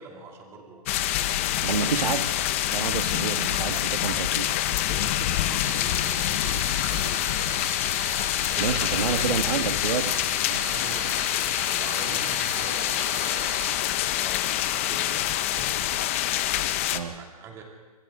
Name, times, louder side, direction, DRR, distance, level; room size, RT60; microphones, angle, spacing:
voice 1, 0.0-1.5 3.6-7.2 8.5-9.5 10.5-13.6 14.1-16.1 17.1-17.6, right 4 dB, 15° right, 1 dB, 2.5 m, -43 dB
sound 1, 0.9-17.0, left 13 dB, 20° left, 0.5 m, -26 dB
voice 2, 1.6-4.5 8.6-10.2 10.5-10.6 16.9-17.2, right 6 dB, 80° right, 8 dB, 1.6 m, -29 dB
sound 2, 5.6-13.8, right 9 dB, 55° right, 2.6 m, -39 dB
27.0 x 26.0 x 3.7 m, 1.3 s
hypercardioid pair, 170°, 19 cm